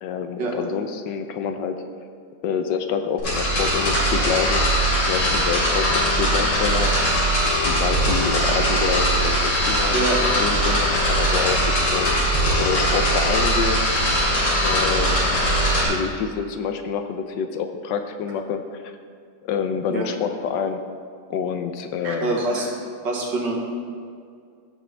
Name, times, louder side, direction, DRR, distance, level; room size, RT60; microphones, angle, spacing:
voice 1, 0.0-1.8 2.4-4.6 5.1-7.0 7.6-12.2 12.6-13.9 14.6-15.3 15.8-18.9 19.4-20.8 21.3-22.5, left 6 dB, 75° left, 7 dB, 1.2 m, -27 dB
sound 1, 3.2-15.9, equal, 90° left, 3.7 m, -20 dB
voice 2, 22.0-22.7 23.0-23.5, right 3 dB, 70° right, -1 dB, 2.1 m, -25 dB
16.0 x 6.3 x 3.3 m, 2.2 s
omnidirectional pair, 2.1 m